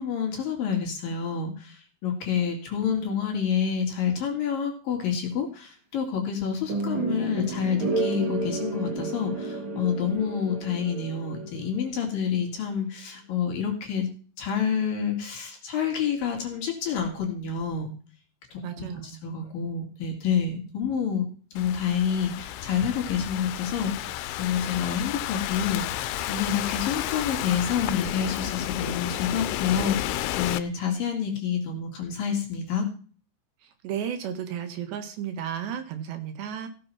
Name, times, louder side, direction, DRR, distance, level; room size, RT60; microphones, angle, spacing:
voice 1, 0.0-14.1 14.4-17.9 18.5-32.9, left 7 dB, 55° left, 2 dB, 3.8 m, -28 dB
sound 1, 6.7-11.8, right 3 dB, 45° right, 1.6 m, -31 dB
voice 2, 18.6-19.2 33.8-36.7, right 9 dB, 70° right, 7 dB, 3.5 m, -33 dB
Thunderstorm / Rain, 21.6-30.6, left 14 dB, 85° left, 3.2 m, -32 dB
16.0 x 6.9 x 5.7 m, 0.40 s
omnidirectional pair, 5.3 m